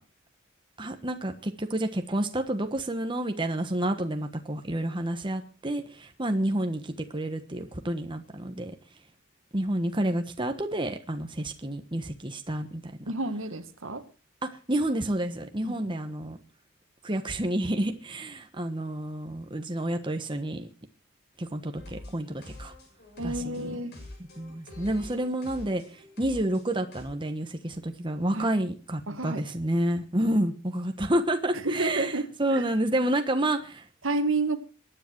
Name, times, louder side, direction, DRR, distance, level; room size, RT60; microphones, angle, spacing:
voice 1, 0.8-8.7 9.5-12.9 14.4-16.4 17.0-20.7 21.4-22.7 23.2-23.7 24.4-32.1 32.4-33.9, right 1 dB, 25° right, 6 dB, 1.3 m, -29 dB
voice 2, 13.1-14.0 15.6-15.9 23.2-24.0 28.3-28.5 29.1-29.4 31.5-32.6 34.0-34.6, right 2 dB, 70° right, 9 dB, 1.8 m, -30 dB
sound 1, 21.8-27.0, left 1 dB, 50° left, 7.3 m, -46 dB
22.5 x 10.0 x 4.6 m, 0.36 s
head